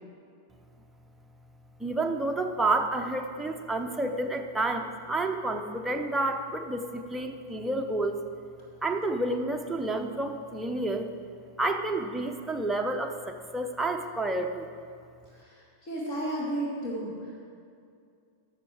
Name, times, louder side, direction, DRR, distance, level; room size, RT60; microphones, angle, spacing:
voice 1, 1.8-8.2 8.8-11.1 11.6-14.7, right 2 dB, 5° right, 3 dB, 0.8 m, -30 dB
voice 2, 15.3-17.5, right 1 dB, 35° left, -5 dB, 2.3 m, -34 dB
12.5 x 7.3 x 4.7 m, 2.4 s
figure-of-eight pair, 90°, 0 cm